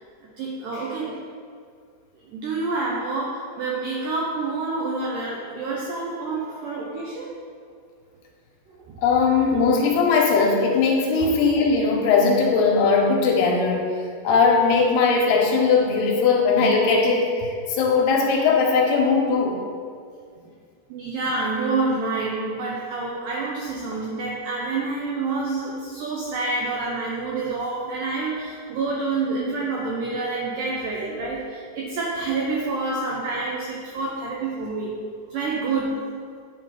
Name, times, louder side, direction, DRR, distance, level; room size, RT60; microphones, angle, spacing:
voice 1, 0.4-1.2 2.2-7.3 8.7-9.0 11.2-11.3 20.9-35.0 35.3-36.1, right 3 dB, 90° right, -3 dB, 1.9 m, -28 dB
voice 2, 9.0-13.9 14.2-19.6, left 4 dB, 80° left, 0 dB, 2.7 m, -19 dB
10.5 x 3.8 x 5.2 m, 2.2 s
omnidirectional pair, 4.9 m